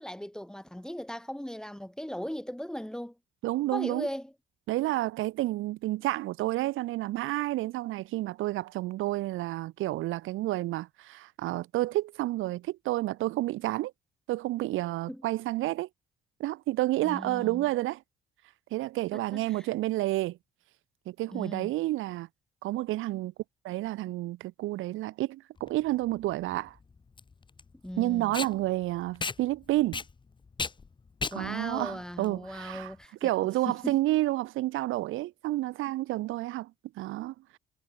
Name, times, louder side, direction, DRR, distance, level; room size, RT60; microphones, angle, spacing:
voice 1, 0.0-3.1 3.7-4.3 15.1-15.3 17.0-17.7 19.1-19.7 21.3-21.7 27.8-28.4 31.3-33.3 33.7-34.0, equal, 5° left, 1.3 m, -38 dB
voice 2, 3.4-4.1 4.7-13.9 14.3-15.9 16.4-18.0 18.7-20.4 21.1-22.3 22.6-23.3 23.6-26.8 28.0-30.0 31.3-32.9 33.2-36.7 37.0-37.6, right 17 dB, 85° right, 0.7 m, -30 dB
Packing tape duct tape, 25.6-33.0, left 4 dB, 25° left, 0.7 m, -38 dB
cardioid pair, 90°, 20 cm